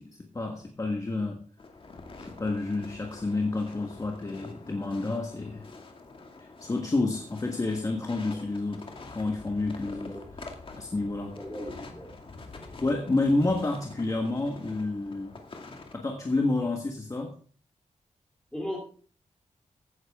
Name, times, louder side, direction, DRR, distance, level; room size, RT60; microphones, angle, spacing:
voice 1, 0.0-1.5 2.2-5.7 6.4-10.2 10.7-11.4 12.8-15.4 15.9-17.4, left 2 dB, 25° left, 1.4 m, -29 dB
sound 1, 1.6-16.0, left 3 dB, 45° left, 2.2 m, -46 dB
voice 2, 11.4-12.1 12.5-12.7 18.5-18.8, left 1 dB, 5° left, 2.8 m, -37 dB
15.5 x 10.0 x 3.6 m
wide cardioid pair, 150°, 13 cm